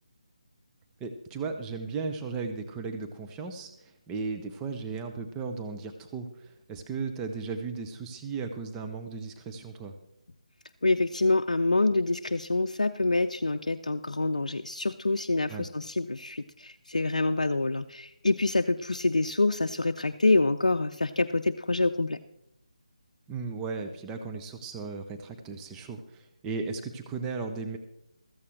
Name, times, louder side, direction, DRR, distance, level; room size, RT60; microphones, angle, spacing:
voice 1, 1.0-10.0 15.5-15.7 23.3-27.8, right 4 dB, 10° right, 5 dB, 0.7 m, -36 dB
voice 2, 10.8-22.2, left 2 dB, 75° left, 7 dB, 0.5 m, -26 dB
15.0 x 14.0 x 3.3 m, 0.82 s
figure-of-eight pair, 155°, 4 cm